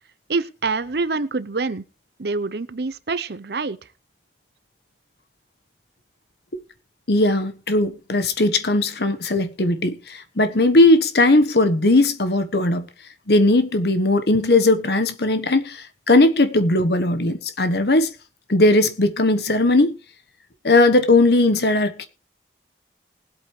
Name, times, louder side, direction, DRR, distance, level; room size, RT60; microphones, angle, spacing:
voice 1, 0.3-1.8 2.2-3.8, right 4 dB, 65° right, 0.7 m, -26 dB
voice 2, 7.1-12.9 13.3-18.1 18.5-20.0 20.6-22.1, left 2 dB, 65° left, 1.2 m, -18 dB
20.0 x 8.2 x 3.2 m
head